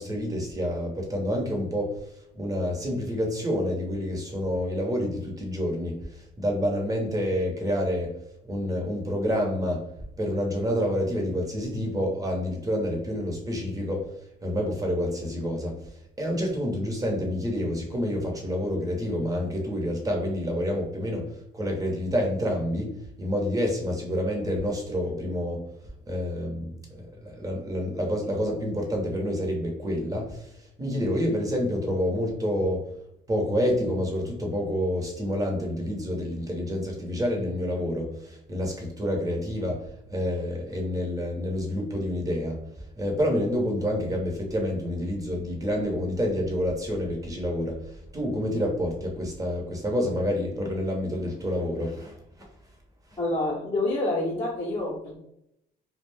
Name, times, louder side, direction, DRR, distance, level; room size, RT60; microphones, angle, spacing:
voice 1, 0.0-2.0 2.3-8.1 8.4-9.8 10.2-14.1 14.4-15.8 16.2-21.3 21.5-22.9 23.2-25.6 26.1-26.7 27.0-30.5 30.8-32.8 33.3-39.8 40.1-42.6 43.0-52.2, equal, 20° right, 0 dB, 0.9 m, -28 dB
voice 2, 53.2-55.2, left 2 dB, 30° left, -4 dB, 0.8 m, -27 dB
2.4 x 2.1 x 3.4 m, 0.79 s
cardioid pair, 110°, 17 cm